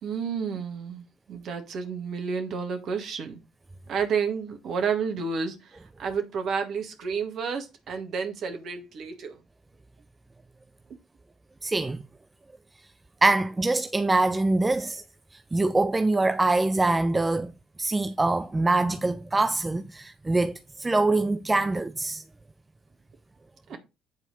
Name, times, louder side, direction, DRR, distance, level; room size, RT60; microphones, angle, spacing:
voice 1, 0.0-3.4 3.9-5.6 6.0-9.4 23.7-23.8, right 6 dB, 55° right, 2.0 m, -30 dB
voice 2, 11.6-12.0 13.2-15.0 15.5-17.5 17.8-22.2, right 2 dB, 20° right, 0.6 m, -24 dB
9.0 x 4.1 x 5.5 m
figure-of-eight pair, 50°, 0 cm